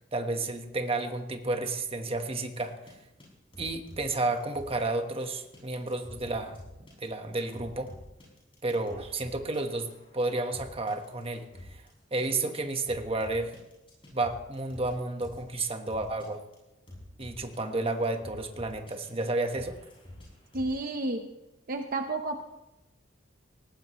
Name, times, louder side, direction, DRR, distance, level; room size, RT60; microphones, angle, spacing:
voice 1, 0.1-2.9 3.6-7.9 8.6-11.8 12.1-13.5 14.1-16.4 17.2-19.8, right 2 dB, 30° right, 5 dB, 1.3 m, -31 dB
sound 1, 2.5-2.9 3.2-3.3 3.5-4.9 5.2-11.9 12.2-12.4 12.7-14.9 15.2-15.4 15.9-16.3 16.5-16.6 16.9-17.6 17.9-19.2 19.5-20.8, left 1 dB, 30° left, 7.5 m, -48 dB
voice 2, 20.5-21.3 21.7-22.4, right 2 dB, 50° right, 4 dB, 0.9 m, -31 dB
19.0 x 18.5 x 3.2 m, 0.97 s
head